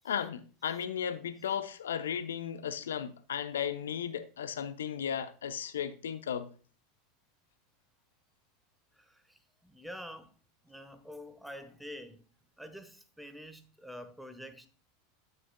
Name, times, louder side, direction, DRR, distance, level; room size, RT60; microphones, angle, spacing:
voice 1, 0.0-6.5, left 8 dB, 75° left, 0.7 m, -35 dB
voice 2, 9.0-10.3 10.6-12.2 12.6-14.7, equal, ahead, 1.2 m, -47 dB
12.0 x 6.7 x 2.2 m
figure-of-eight pair, 85°, 0 cm